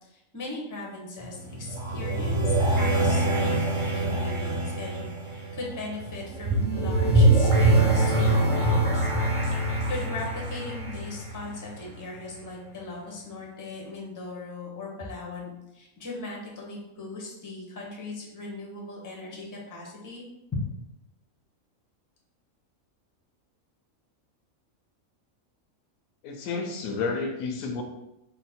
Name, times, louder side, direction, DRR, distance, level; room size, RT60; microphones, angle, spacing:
voice 1, 0.0-3.6 3.9-9.1 9.5-20.2, left 2 dB, 20° left, -3 dB, 0.6 m, -39 dB
sound 1, 1.2-12.0, right 2 dB, 35° right, 0.6 m, -24 dB
voice 2, 26.2-27.8, left 4 dB, 80° left, 4 dB, 1.0 m, -30 dB
4.0 x 2.1 x 4.2 m, 0.91 s
omnidirectional pair, 1.4 m